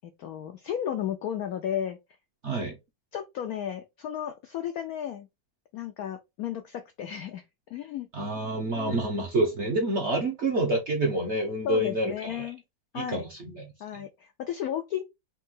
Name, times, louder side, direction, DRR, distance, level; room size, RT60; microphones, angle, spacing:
voice 1, 0.2-2.0 3.1-5.3 5.7-7.4 7.7-8.1 8.7-9.4 11.6-12.6 12.9-13.2 13.8-15.0, left 9 dB, 80° left, 0.8 m, -34 dB
voice 2, 2.4-2.8 8.1-12.5 12.9-13.7 13.9-14.0, right 1 dB, 55° right, 0.8 m, -28 dB
4.4 x 2.7 x 3.7 m
omnidirectional pair, 2.1 m